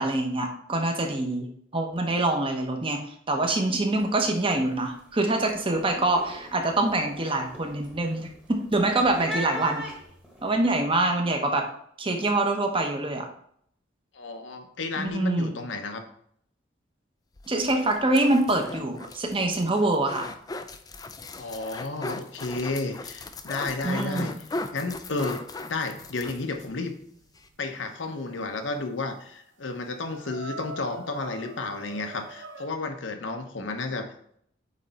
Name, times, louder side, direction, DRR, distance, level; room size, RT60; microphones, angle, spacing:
voice 1, 0.0-3.0 3.3-9.9 10.4-11.6 12.0-13.3 15.0-15.6 17.5-20.3 23.8-24.4, right 2 dB, 30° right, 3 dB, 0.9 m, -25 dB
sound 1, 3.4-3.7 3.9-4.4 4.8-10.7, equal, 5° right, 1.2 m, -40 dB
voice 2, 14.1-16.0 21.4-24.3 24.7-25.4 25.7-26.9 27.6-34.1, left 3 dB, 80° left, 6 dB, 0.9 m, -32 dB
sound 2, 17.4-26.7 27.0-27.1 27.3-27.5, left 2 dB, 20° left, 0.4 m, -38 dB
sound 3, 25.7-27.4 28.8-28.9 29.3-29.4 29.7-32.7, right 1 dB, 85° right, 0.8 m, -44 dB
8.2 x 3.3 x 4.1 m, 0.67 s
head